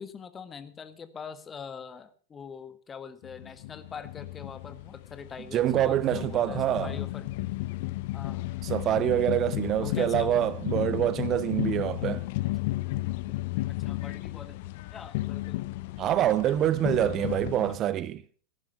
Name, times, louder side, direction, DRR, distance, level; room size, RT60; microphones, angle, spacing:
voice 1, 0.0-7.3 8.1-8.6 9.8-10.4 13.8-15.6 17.7-17.8, left 6 dB, 20° left, 1.6 m, -43 dB
sound 1, 3.2-17.8, left 18 dB, 50° left, 0.7 m, -33 dB
voice 2, 5.5-7.0 8.6-12.3 16.0-18.2, right 12 dB, 30° right, 0.7 m, -26 dB
18.0 x 10.5 x 5.6 m
figure-of-eight pair, 90°, 0 cm